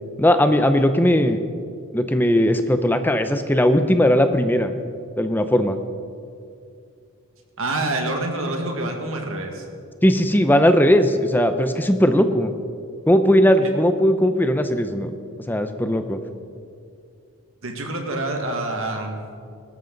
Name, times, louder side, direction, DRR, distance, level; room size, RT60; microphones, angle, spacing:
voice 1, 0.2-1.4 1.9-4.7 5.2-5.8 10.0-12.5 13.1-15.1 15.5-16.2, equal, 10° left, 9 dB, 0.6 m, -18 dB
voice 2, 7.6-9.7 13.6-13.7 17.6-19.2, right 2 dB, 65° right, 3 dB, 1.9 m, -27 dB
19.5 x 13.0 x 4.0 m, 2.3 s
head